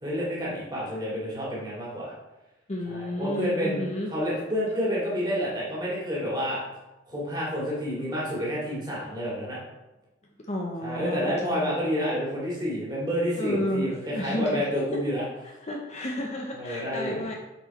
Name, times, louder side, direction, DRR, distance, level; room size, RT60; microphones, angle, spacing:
voice 1, 0.0-2.1 2.9-3.8 4.1-6.6 7.1-9.6 10.8-15.2 16.6-17.2, equal, 20° right, -6 dB, 2.2 m, -29 dB
voice 2, 2.7-4.1 10.5-11.6 13.4-15.0 15.4-17.3, equal, 30° left, 1 dB, 0.6 m, -32 dB
6.9 x 4.5 x 4.2 m, 1.0 s
head